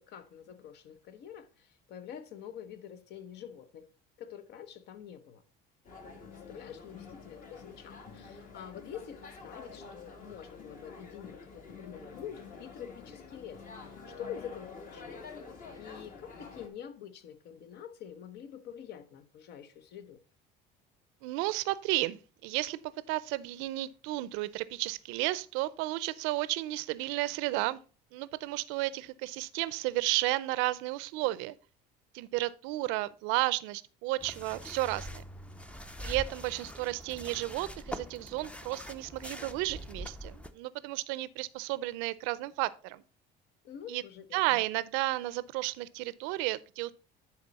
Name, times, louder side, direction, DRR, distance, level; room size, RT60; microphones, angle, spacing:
voice 1, 0.0-3.9 4.2-5.4 6.5-15.3 15.8-20.2 43.6-44.6, left 9 dB, 60° left, 0.9 m, -46 dB
sound 1, 5.8-16.7, left 4 dB, 45° left, 1.7 m, -48 dB
voice 2, 21.2-22.8 23.1-27.8 28.1-31.6 32.1-35.2 36.0-43.0 43.9-44.0 44.3-46.9, right 18 dB, 80° right, 0.6 m, -33 dB
sound 2, 34.2-40.5, equal, 5° left, 0.5 m, -43 dB
10.5 x 4.3 x 4.1 m
cardioid pair, 125°, 20 cm